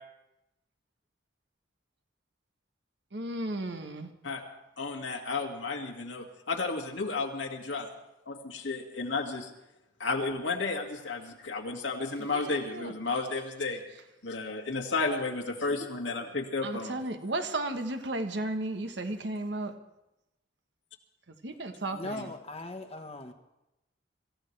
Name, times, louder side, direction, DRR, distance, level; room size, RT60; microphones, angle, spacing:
voice 1, 3.1-4.1 12.3-12.9 16.6-19.7 21.4-22.3, right 2 dB, 65° right, 1.2 m, -34 dB
voice 2, 4.8-7.9 8.3-9.5 10.0-13.8 14.2-16.9, left 3 dB, 90° left, 2.2 m, -32 dB
voice 3, 21.9-23.3, left 1 dB, 35° left, 1.3 m, -39 dB
26.0 x 14.5 x 3.3 m
head